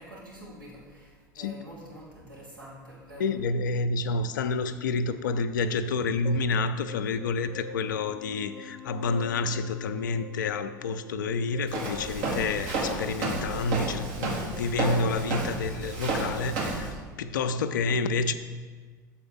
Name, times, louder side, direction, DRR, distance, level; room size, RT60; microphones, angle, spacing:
voice 1, 0.0-3.2, equal, 85° right, -6 dB, 2.2 m, -46 dB
voice 2, 3.2-18.3, left 3 dB, 75° left, 11 dB, 0.4 m, -29 dB
sound 1, 6.3-16.4, left 3 dB, 15° left, 0.5 m, -45 dB
Walk footsteps, 11.7-16.9, right 2 dB, 65° right, 1.5 m, -31 dB
6.9 x 4.3 x 5.3 m, 1.5 s
hypercardioid pair, 75°, 10 cm